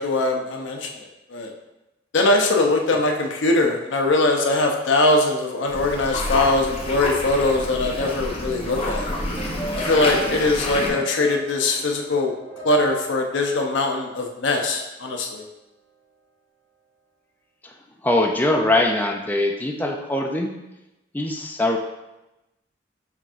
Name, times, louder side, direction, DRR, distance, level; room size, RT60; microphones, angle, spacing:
voice 1, 0.0-1.5 2.1-9.1 9.8-12.3 12.6-15.4, left 2 dB, 85° left, 2 dB, 0.6 m, -21 dB
sound 1, 5.7-10.9, left 1 dB, 30° left, 0.9 m, -28 dB
sound 2, 9.4-14.7, right 2 dB, 25° right, 1.4 m, -36 dB
voice 2, 18.0-20.5 21.1-21.8, left 1 dB, 10° left, 1 dB, 0.3 m, -22 dB
5.8 x 3.5 x 2.5 m, 0.96 s
head